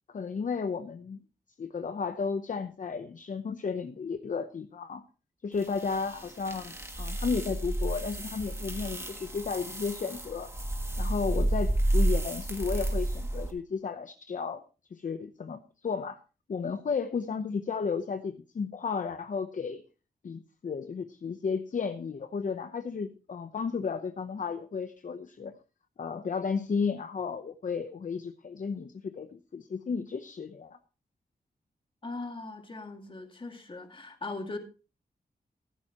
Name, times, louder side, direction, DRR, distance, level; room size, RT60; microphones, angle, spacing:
voice 1, 0.1-1.2 1.6-5.0 5.4-10.5 11.0-14.6 14.9-16.2 16.5-19.8 20.2-25.5 26.0-30.8, left 5 dB, 50° left, 9 dB, 0.7 m, -33 dB
sound 1, 5.6-13.5, right 1 dB, 15° right, 1.5 m, -31 dB
voice 2, 32.0-34.6, left 3 dB, 30° left, 5 dB, 2.1 m, -39 dB
14.5 x 12.0 x 2.9 m, 0.33 s
wide cardioid pair, 140°, 17 cm